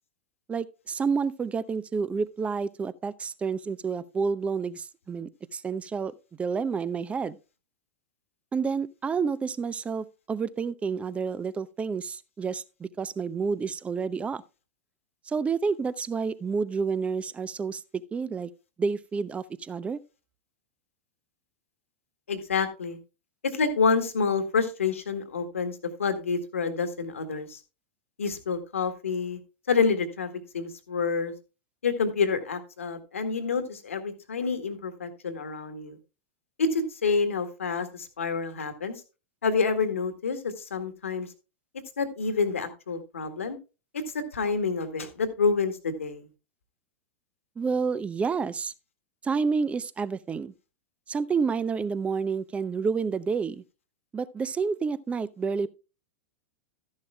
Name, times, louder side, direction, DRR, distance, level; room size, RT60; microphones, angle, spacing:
voice 1, 0.5-7.4 8.5-14.4 15.3-17.8 18.1-18.5 18.8-20.0 47.6-48.7 49.2-50.5 51.1-53.6 54.1-55.7, right 5 dB, 15° right, 0.6 m, -29 dB
voice 2, 22.3-23.0 23.4-27.6 28.2-29.4 29.7-31.3 31.8-36.0 36.6-38.9 39.4-41.3 42.0-43.6 43.9-46.3, left 5 dB, 80° left, 1.8 m, -28 dB
13.0 x 10.5 x 2.3 m
hypercardioid pair, 100°, 7 cm